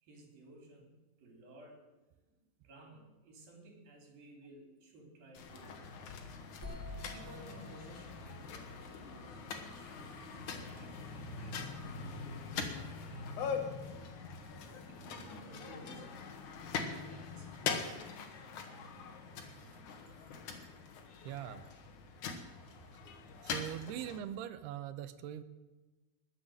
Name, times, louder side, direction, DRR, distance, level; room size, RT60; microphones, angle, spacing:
voice 1, 0.0-1.8 2.2-2.3 2.6-6.1 7.1-9.4 9.7-11.6 12.0-13.6 14.8-16.3 16.6-18.1 20.7-21.3, right 1 dB, 60° right, 2 dB, 5.1 m, -56 dB
sound 1, 5.3-24.2, left 5 dB, 55° left, 2.6 m, -43 dB
sound 2, 6.6-10.4, left 2 dB, 5° left, 2.9 m, -51 dB
voice 2, 21.3-21.6 23.4-25.4, right 11 dB, 85° right, 12 dB, 2.8 m, -41 dB
20.5 x 8.1 x 7.8 m, 1.2 s
omnidirectional pair, 4.8 m